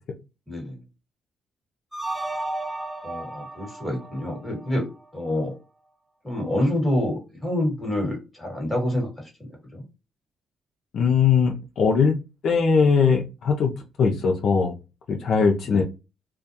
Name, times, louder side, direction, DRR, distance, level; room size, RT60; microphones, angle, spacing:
voice 1, 0.5-0.8 3.0-4.9 5.1-5.5 6.2-9.8 15.6-15.8, left 1 dB, 5° left, 0 dB, 1.4 m, -27 dB
sound 1, 1.9-5.0, right 2 dB, 10° right, 0.7 m, -34 dB
voice 2, 10.9-12.1 12.4-13.7 14.0-14.7 15.1-15.8, left 5 dB, 65° left, 3 dB, 0.5 m, -20 dB
2.3 x 2.2 x 2.6 m, 0.28 s
cardioid pair, 90°, 0 cm